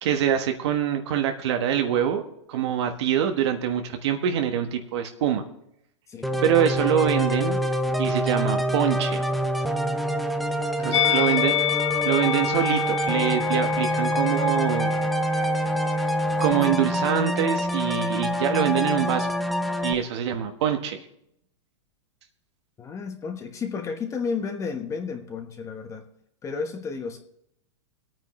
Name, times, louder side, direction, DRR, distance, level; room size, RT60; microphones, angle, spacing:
voice 1, 0.0-2.2 2.5-5.4 6.4-7.6 8.0-9.2 10.8-11.5 12.0-14.9 16.4-19.3 19.8-21.0, right 9 dB, 65° right, 4 dB, 1.4 m, -24 dB
voice 2, 6.1-6.4 10.8-11.3 22.8-26.1 26.4-27.2, left 5 dB, 20° left, 5 dB, 1.2 m, -32 dB
sound 1, 6.2-19.9, equal, ahead, 0.7 m, -26 dB
Musical instrument, 10.9-16.2 16.4-16.6, left 13 dB, 75° left, 0.4 m, -28 dB
24.0 x 9.1 x 3.1 m, 0.76 s
hypercardioid pair, 135°, 15 cm